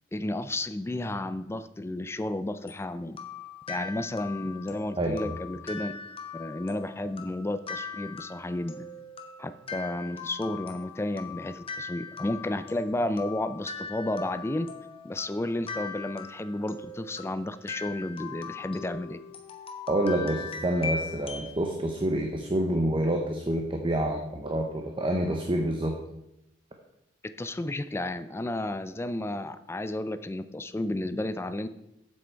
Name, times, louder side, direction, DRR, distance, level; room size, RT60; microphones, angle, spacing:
voice 1, 0.1-3.2 3.7-5.9 6.3-8.8 9.4-14.7 15.0-19.2 27.2-31.7, left 1 dB, 15° left, 12 dB, 0.4 m, -32 dB
sound 1, 2.7-21.6, left 5 dB, 30° left, 1.0 m, -40 dB
voice 2, 5.0-5.4 19.9-25.9, right 1 dB, 30° right, 3 dB, 0.8 m, -27 dB
7.9 x 7.4 x 4.5 m, 0.87 s
head